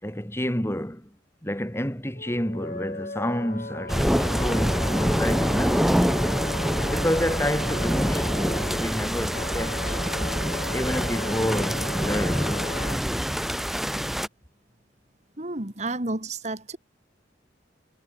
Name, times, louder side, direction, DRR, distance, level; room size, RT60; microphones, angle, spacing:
voice 1, 0.0-1.1 1.4-5.9 6.9-10.0 10.7-13.1, equal, 15° left, 5.8 m, -29 dB
Wind instrument woodwind instrument, 2.1-13.0, left 3 dB, 45° left, 2.4 m, -37 dB
sound 1, 3.9-14.3, equal, ahead, 0.6 m, -25 dB
voice 2, 15.4-16.8, right 2 dB, 40° right, 2.4 m, -31 dB
head